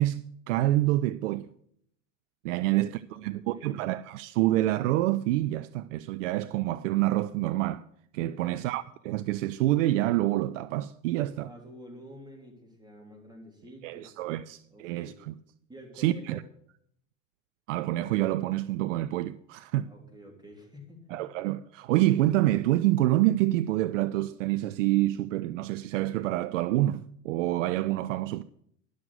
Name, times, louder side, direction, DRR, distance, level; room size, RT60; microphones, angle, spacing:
voice 1, 0.0-1.5 2.4-7.9 8.1-11.5 13.8-15.3 16.0-16.4 17.7-19.9 21.1-28.4, right 15 dB, 75° right, 0.5 m, -27 dB
voice 2, 2.6-3.9 8.3-8.6 11.1-14.4 14.7-15.2 15.7-16.5 19.8-21.3, equal, 10° right, 3.4 m, -50 dB
11.0 x 6.3 x 7.8 m
hypercardioid pair, 95°, 38 cm